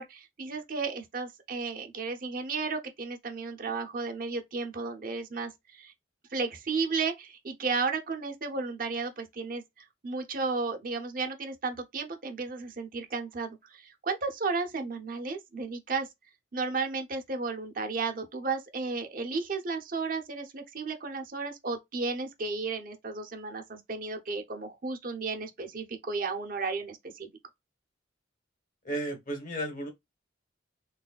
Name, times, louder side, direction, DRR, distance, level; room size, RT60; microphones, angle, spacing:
voice 1, 0.0-5.9 6.3-16.1 16.5-27.3, right 4 dB, 50° right, 0.8 m, -33 dB
voice 2, 28.8-29.9, right 1 dB, 45° left, 1.4 m, -33 dB
4.0 x 3.2 x 2.3 m
head